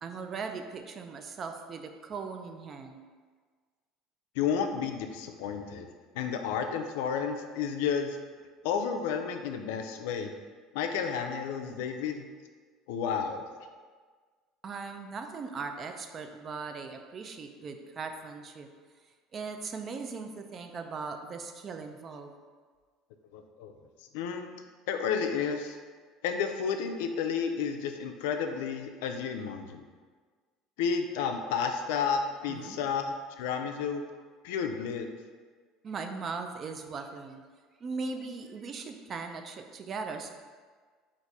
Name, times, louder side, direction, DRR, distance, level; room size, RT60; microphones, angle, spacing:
voice 1, 0.0-3.0 14.6-18.7 19.3-22.3 32.5-32.8 35.8-37.4 37.8-40.3, right 4 dB, 35° right, 6 dB, 0.4 m, -39 dB
voice 2, 4.3-8.2 8.6-10.3 10.7-12.3 12.9-13.4 23.3-23.7 24.1-24.5 24.9-25.8 26.2-29.8 30.8-34.0 34.4-35.1, left 6 dB, 85° left, 5 dB, 0.4 m, -31 dB
4.1 x 2.5 x 4.6 m, 1.5 s
cardioid pair, 130°, 0 cm